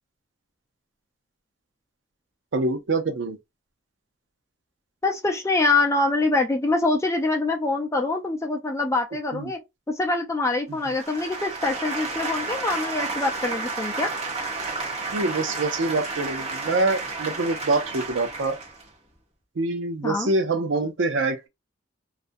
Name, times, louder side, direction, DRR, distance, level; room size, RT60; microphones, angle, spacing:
voice 1, 2.5-3.4 9.3-9.5 10.7-10.8 15.1-18.6 19.6-21.5, right 3 dB, 75° right, 0.5 m, -25 dB
voice 2, 5.0-9.6 9.9-14.1 20.0-20.3, left 3 dB, 15° left, 0.4 m, -24 dB
Applaus - Seminar kurz, 10.8-18.8, right 3 dB, 35° right, 0.9 m, -31 dB
2.4 x 2.1 x 2.6 m
head